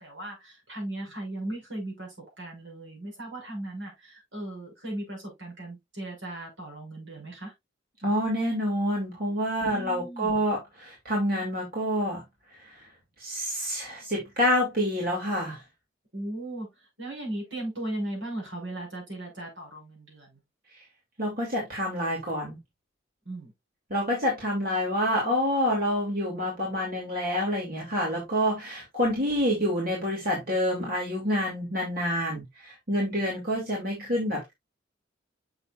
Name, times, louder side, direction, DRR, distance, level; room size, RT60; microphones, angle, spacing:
voice 1, 0.0-7.5 9.6-10.5 16.1-16.7 17.0-20.4 23.3-23.5, right 1 dB, 80° right, 5.7 m, -37 dB
voice 2, 8.0-12.2 12.6-12.7 13.2-15.6 21.2-22.6 23.9-34.5, equal, 50° right, 2.9 m, -27 dB
7.8 x 6.1 x 2.5 m
head